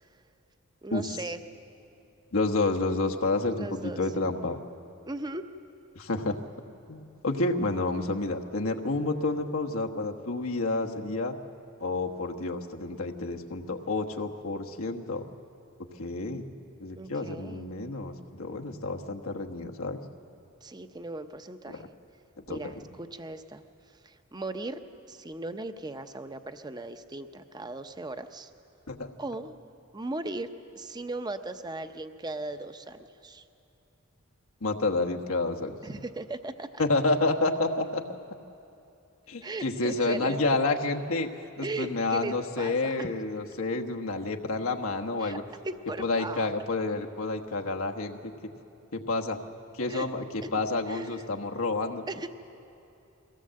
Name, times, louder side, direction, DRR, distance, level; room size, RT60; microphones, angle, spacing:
voice 1, 0.8-1.4 3.6-4.0 5.1-5.5 17.0-17.7 20.6-21.9 22.5-23.6 24.0-24.8 25.1-28.5 29.2-29.5 29.9-30.5 30.7-33.4 35.8-36.7 39.4-40.4 41.6-43.1 45.2-45.4 45.6-46.5 49.9-50.1 50.4-50.5 50.9-51.1 52.1-52.3, right 2 dB, 20° right, 9 dB, 0.7 m, -37 dB
voice 2, 2.3-4.6 5.9-6.4 6.9-11.3 11.8-15.2 16.0-16.4 16.8-20.0 21.7-21.8 22.4-22.7 28.9-29.1 34.6-35.8 36.8-38.0 39.3-41.3 41.6-45.4 46.0-48.2 48.9-49.4 49.7-52.0, left 2 dB, 90° left, 2 dB, 1.3 m, -29 dB
23.0 x 16.5 x 7.6 m, 2.8 s
head